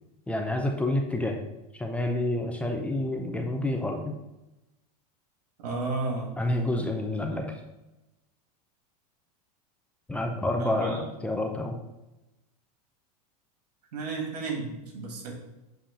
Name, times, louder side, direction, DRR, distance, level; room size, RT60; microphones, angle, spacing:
voice 1, 0.3-1.4 1.7-4.1 6.4-7.5 10.1-11.8, left 1 dB, 5° left, 3 dB, 0.5 m, -28 dB
voice 2, 5.6-6.3 10.6-11.0 13.9-15.3, right 3 dB, 90° right, 1 dB, 2.0 m, -32 dB
7.6 x 2.9 x 5.1 m, 0.98 s
supercardioid pair, 140°, 20 cm